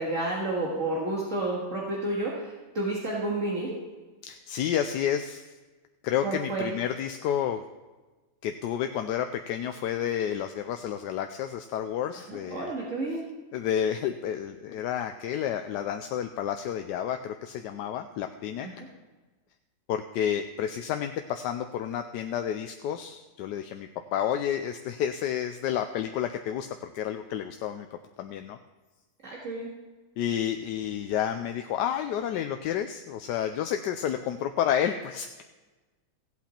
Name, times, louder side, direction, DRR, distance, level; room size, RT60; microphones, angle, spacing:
voice 1, 0.0-3.7 6.2-6.7 12.1-13.3 18.6-18.9 29.2-29.7, right 2 dB, 50° right, -4 dB, 2.1 m, -31 dB
voice 2, 4.2-5.4 6.0-7.6 8.4-12.7 13.5-18.7 19.9-27.9 28.2-28.6 30.2-35.4, left 9 dB, 85° left, 6 dB, 1.2 m, -30 dB
16.0 x 8.4 x 4.3 m, 1.2 s
omnidirectional pair, 1.8 m